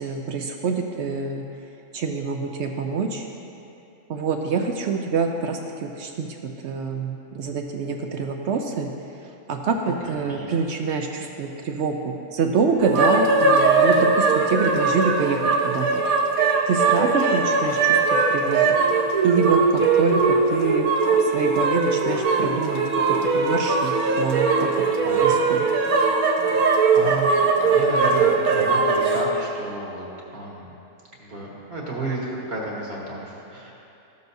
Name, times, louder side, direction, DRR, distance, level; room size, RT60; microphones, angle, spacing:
voice 1, 0.0-1.4 1.9-3.3 4.1-6.3 6.6-8.9 9.5-16.0 16.7-18.0 18.3-18.8 19.2-20.9 21.2-22.8 23.3-24.7 25.2-25.6, right 5 dB, 65° right, 3 dB, 0.7 m, -26 dB
voice 2, 10.0-10.5 25.0-25.4 26.9-30.0 30.3-30.7 31.2-33.7, right 2 dB, 45° right, -4 dB, 1.5 m, -32 dB
sound 1, 12.8-29.2, right 4 dB, 85° right, 1.2 m, -20 dB
13.5 x 6.8 x 2.7 m, 2.9 s
omnidirectional pair, 1.5 m